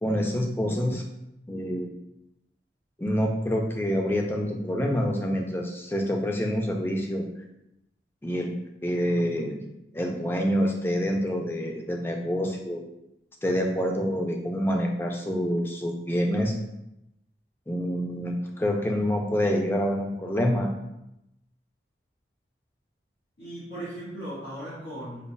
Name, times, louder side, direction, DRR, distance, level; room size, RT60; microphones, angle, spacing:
voice 1, 0.0-1.0 1.5-1.9 3.0-7.2 8.2-8.5 8.8-9.6 9.9-12.8 13.4-16.5 17.7-20.7, equal, 15° left, 1 dB, 0.3 m, -27 dB
voice 2, 23.4-25.3, right 1 dB, 80° left, -10 dB, 1.4 m, -37 dB
5.1 x 2.3 x 2.2 m, 0.88 s
head